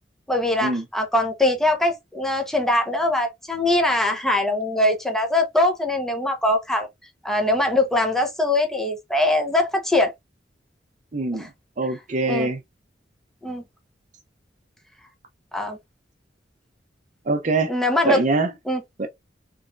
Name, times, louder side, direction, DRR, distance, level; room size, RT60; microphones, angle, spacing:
voice 1, 0.3-6.9 7.2-10.1 11.3-11.5 12.3-12.5 13.4-13.6 15.5-15.8 17.7-18.2 18.7-18.8, left 1 dB, ahead, 0.6 m, -22 dB
voice 2, 11.1-11.5 11.8-12.6 17.3-17.7 18.0-18.5 19.0-19.1, right 3 dB, 45° right, 0.6 m, -23 dB
3.5 x 3.0 x 2.5 m
head